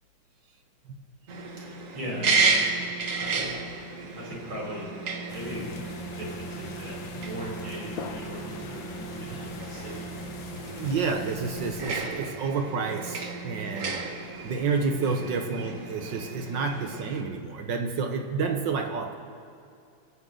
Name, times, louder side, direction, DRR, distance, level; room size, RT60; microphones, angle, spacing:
sound 1, 1.3-17.2, right 4 dB, 45° right, 1.3 m, -33 dB
voice 1, 1.6-2.9 3.1-3.5 4.1-4.9 5.3-5.8 6.2-10.1 10.7-10.9 15.0-15.2, equal, 85° right, -4 dB, 5.1 m, -39 dB
sound 2, 5.3-12.1, left 6 dB, 70° left, 1.6 m, -41 dB
voice 2, 10.8-14.0 14.4-19.2, right 4 dB, 65° right, 4 dB, 1.6 m, -29 dB
23.5 x 9.4 x 3.8 m, 2.5 s
omnidirectional pair, 2.2 m